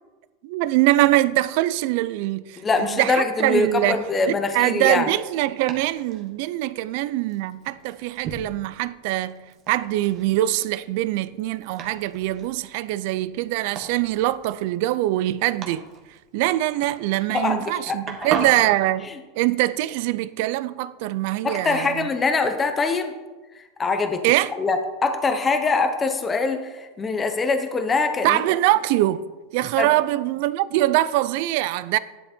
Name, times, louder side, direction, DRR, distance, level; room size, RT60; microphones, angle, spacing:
voice 1, 0.4-4.0 4.3-15.9 16.3-19.1 19.4-22.1 24.2-24.5 28.2-32.0, right 16 dB, 50° right, 0.5 m, -23 dB
voice 2, 2.6-5.1 17.3-18.0 21.4-23.1 23.8-24.2 24.5-28.4 29.8-29.9, left 4 dB, 15° left, 0.9 m, -23 dB
Domestic sounds home sounds, 3.2-18.8, right 5 dB, 35° right, 1.7 m, -39 dB
12.5 x 11.5 x 4.4 m
supercardioid pair, 170°, 0 cm